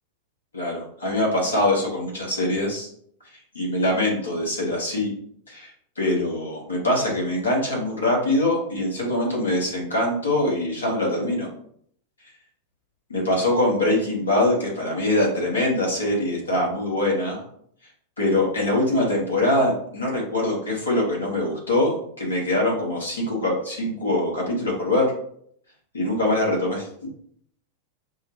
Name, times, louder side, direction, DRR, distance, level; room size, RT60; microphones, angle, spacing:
voice 1, 0.5-2.9 3.6-5.1 5.5-5.7 6.0-11.5 13.1-17.4 18.2-25.1 25.9-27.1, left 1 dB, 75° left, -3 dB, 1.6 m, -23 dB
5.4 x 2.5 x 3.0 m, 0.66 s
figure-of-eight pair, 90°, 0 cm